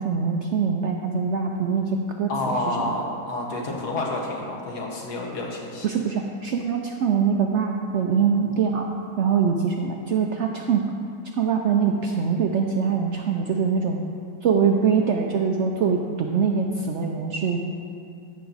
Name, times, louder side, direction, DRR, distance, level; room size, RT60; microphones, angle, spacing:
voice 1, 0.0-2.3 2.8-2.9 5.8-8.9 9.2-10.9 11.4-14.0 14.4-17.6, right 6 dB, 70° right, 2 dB, 0.6 m, -23 dB
voice 2, 2.3-5.9, left 2 dB, 75° left, -2 dB, 1.7 m, -29 dB
14.0 x 5.7 x 4.0 m, 2.5 s
omnidirectional pair, 1.7 m